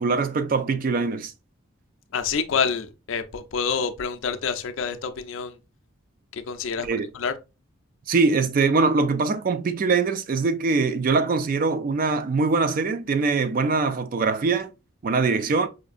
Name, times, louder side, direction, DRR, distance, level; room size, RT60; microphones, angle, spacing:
voice 1, 0.0-1.3 6.8-7.1 8.1-14.7 15.0-15.7, right 4 dB, 45° right, 0.3 m, -22 dB
voice 2, 2.1-5.5 6.3-6.9 7.1-7.3, left 6 dB, 75° left, 0.4 m, -27 dB
4.9 x 2.6 x 2.4 m
head